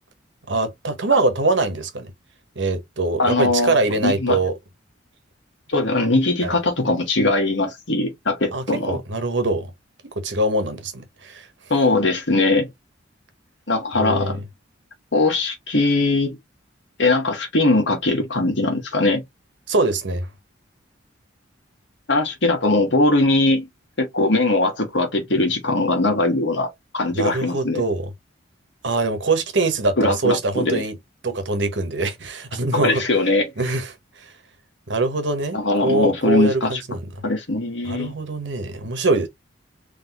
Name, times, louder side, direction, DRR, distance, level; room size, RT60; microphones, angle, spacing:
voice 1, 0.5-2.1 2.5-4.5 6.4-6.6 8.5-9.7 10.1-11.5 13.9-14.4 19.7-20.3 27.1-28.1 28.8-30.9 31.2-33.0 33.6-34.3 34.9-37.0 37.8-39.3, right 2 dB, 70° right, 1.2 m, -23 dB
voice 2, 3.2-3.8 4.0-4.4 5.7-9.0 11.7-12.7 13.7-14.4 15.1-16.4 17.0-19.2 22.1-23.7 24.0-27.8 30.0-30.8 32.7-33.5 35.5-36.8 37.2-38.1, left 2 dB, 70° left, 1.8 m, -20 dB
4.0 x 3.3 x 3.0 m
head